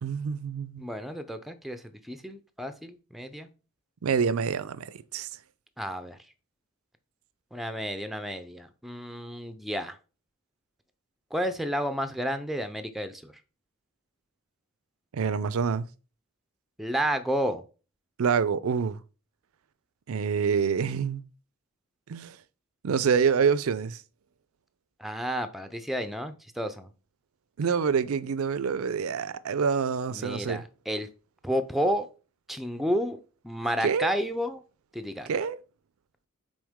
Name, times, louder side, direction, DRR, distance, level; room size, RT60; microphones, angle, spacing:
voice 1, 0.0-0.8 4.0-5.3 15.1-15.9 18.2-19.0 20.1-21.2 22.1-22.4 22.8-24.0 27.6-30.6 33.8-34.1 35.3-35.6, right 6 dB, 75° right, 0.4 m, -26 dB
voice 2, 0.8-3.5 5.8-6.2 7.5-10.0 11.3-13.3 16.8-17.6 25.0-26.9 30.1-31.1 31.4-32.1 32.5-34.6 34.9-35.3, equal, ahead, 0.4 m, -31 dB
6.2 x 4.3 x 3.5 m
head